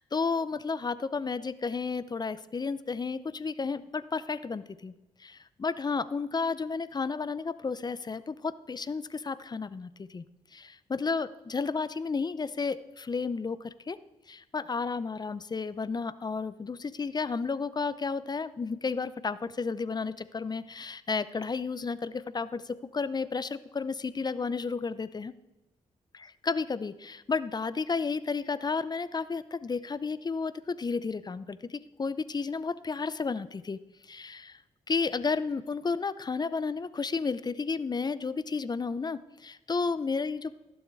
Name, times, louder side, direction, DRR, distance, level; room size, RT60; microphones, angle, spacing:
voice 1, 0.1-4.9 5.2-10.2 10.5-14.0 14.3-25.3 26.2-34.6 34.9-40.5, left 4 dB, 35° left, 16 dB, 0.6 m, -32 dB
16.0 x 7.2 x 4.7 m, 1.0 s
cardioid pair, 60°, 13 cm